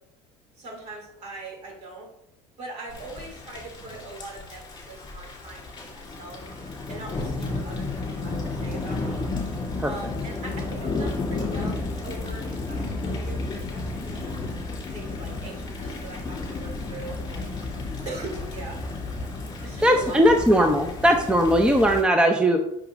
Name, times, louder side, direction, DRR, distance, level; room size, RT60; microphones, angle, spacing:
voice 1, 0.6-2.1 2.6-6.4 6.9-7.8 8.2-9.3 9.8-14.2 14.9-17.5 18.0-18.8 19.6-20.6, right 3 dB, 50° right, 0 dB, 2.8 m, -41 dB
Thunder / Rain, 2.9-22.0, left 3 dB, 30° left, 2.7 m, -32 dB
voice 2, 19.8-22.6, equal, 5° right, 4 dB, 0.6 m, -19 dB
7.8 x 6.1 x 2.6 m, 0.81 s
cardioid pair, 120°, 14 cm